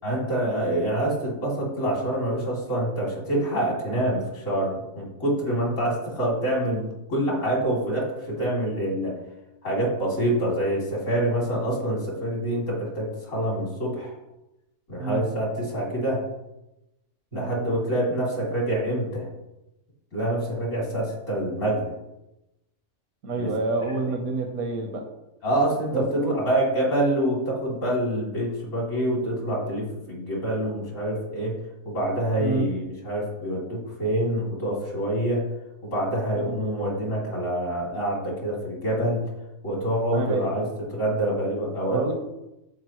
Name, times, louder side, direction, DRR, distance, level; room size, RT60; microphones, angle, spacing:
voice 1, 0.0-9.1 9.6-14.2 14.9-16.2 17.3-19.3 20.1-21.9 23.4-23.5 24.0-24.1 25.4-31.6 31.8-35.4 35.8-39.2 39.6-42.0, right 1 dB, 65° left, -4 dB, 3.5 m, -26 dB
voice 2, 23.2-25.0 25.9-26.4 32.4-32.7 36.3-36.6 40.1-40.5 41.9-42.1, right 3 dB, 80° right, 3 dB, 1.5 m, -28 dB
14.0 x 5.2 x 3.1 m, 0.95 s
omnidirectional pair, 1.4 m